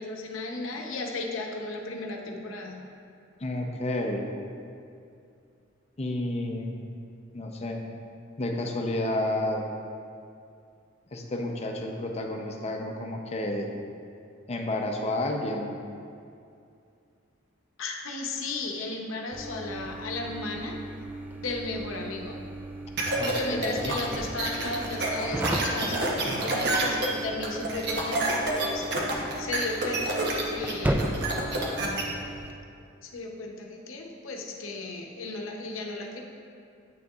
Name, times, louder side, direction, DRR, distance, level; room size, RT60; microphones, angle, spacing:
voice 1, 0.0-2.8 17.8-20.8 21.4-22.4 23.2-31.3 33.0-36.2, left 3 dB, 80° left, 1 dB, 0.8 m, -35 dB
voice 2, 3.4-4.3 6.0-6.8 7.3-7.8 8.4-9.6 11.1-13.7 14.5-15.7 23.2-23.3 23.6-23.9, left 1 dB, 30° left, 2 dB, 0.6 m, -30 dB
sound 1, 19.3-32.5, right 1 dB, 10° right, 0.3 m, -36 dB
sound 2, 23.0-32.0, right 2 dB, 60° right, 0.9 m, -28 dB
8.4 x 6.4 x 2.4 m, 2.5 s
head